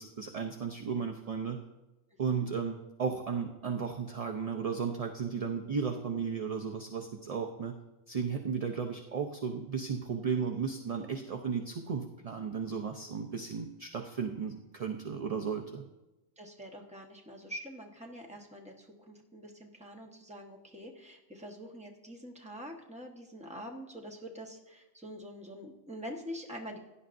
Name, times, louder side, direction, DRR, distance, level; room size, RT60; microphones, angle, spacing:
voice 1, 0.0-1.6 2.2-7.8 8.1-15.8, right 6 dB, 40° right, 4 dB, 0.6 m, -34 dB
voice 2, 16.4-26.8, equal, 5° right, 0 dB, 1.1 m, -45 dB
16.5 x 10.0 x 2.6 m, 1.0 s
omnidirectional pair, 1.2 m